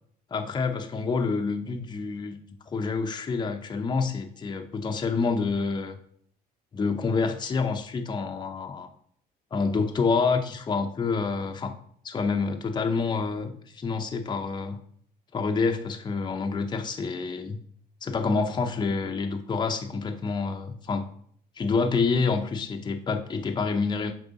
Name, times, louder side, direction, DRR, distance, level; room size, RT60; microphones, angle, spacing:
voice 1, 0.3-2.4 2.7-6.0 6.7-8.9 9.5-11.7 12.0-14.8 15.3-17.6 18.0-21.1 21.6-24.1, left 4 dB, 25° left, 4 dB, 0.7 m, -27 dB
7.3 x 4.8 x 4.0 m, 0.63 s
cardioid pair, 110°, 17 cm